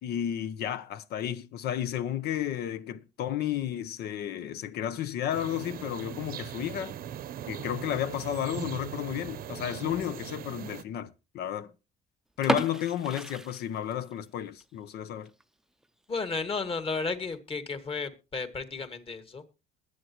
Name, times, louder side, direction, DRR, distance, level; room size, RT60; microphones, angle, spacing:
voice 1, 0.0-6.9 7.5-11.7 12.4-15.3, left 10 dB, 70° left, 0.9 m, -32 dB
sound 1, 5.3-10.8, right 10 dB, 60° right, 0.8 m, -40 dB
sound 2, 12.4-14.3 14.6-14.7 15.2-15.4 15.8-15.9 16.2-16.3 17.0-17.3, right 1 dB, 5° right, 0.6 m, -32 dB
voice 2, 16.1-19.4, left 4 dB, 35° left, 1.9 m, -33 dB
21.5 x 8.1 x 3.0 m
cardioid pair, 110°, 17 cm